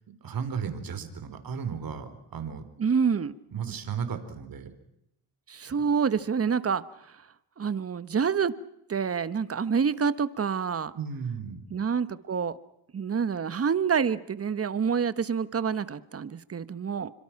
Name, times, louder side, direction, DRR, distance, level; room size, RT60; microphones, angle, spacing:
voice 1, 0.2-2.7 3.5-4.7 11.0-11.6, right 6 dB, 50° right, 9 dB, 4.1 m, -34 dB
voice 2, 2.8-3.3 5.5-7.1 7.6-8.6 8.9-10.9 11.7-12.6 12.9-17.1, right 6 dB, 30° right, 15 dB, 1.3 m, -27 dB
27.5 x 25.0 x 6.0 m, 0.81 s
cardioid pair, 100°, 45 cm